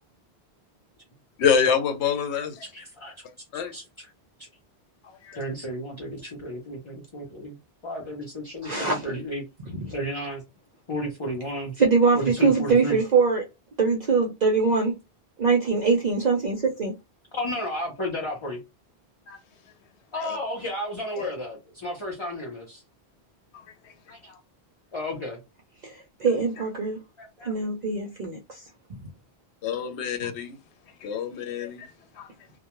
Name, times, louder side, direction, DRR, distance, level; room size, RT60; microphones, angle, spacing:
voice 1, 1.4-2.6 3.5-3.7 5.2-5.4 19.3-19.4 20.2-20.4 21.2-21.3 29.6-30.5 31.0-31.9 32.2-32.3, left 7 dB, 85° left, 0.9 m, -26 dB
voice 2, 2.7-3.1 3.7-4.1 4.4-4.5 5.3-7.6 7.8-9.4 9.9-10.4 10.9-11.7 12.1-13.0 17.3-18.6 20.1-22.8 24.1-24.4 24.9-25.4 27.2-27.5, equal, 30° left, 0.7 m, -33 dB
voice 3, 8.6-9.0 9.8-9.9 11.8-13.5 13.8-14.9 15.4-16.9 25.8-27.0 27.4-28.6 28.9-29.0, right 4 dB, 55° right, 0.5 m, -23 dB
2.3 x 2.1 x 2.9 m
omnidirectional pair, 1.1 m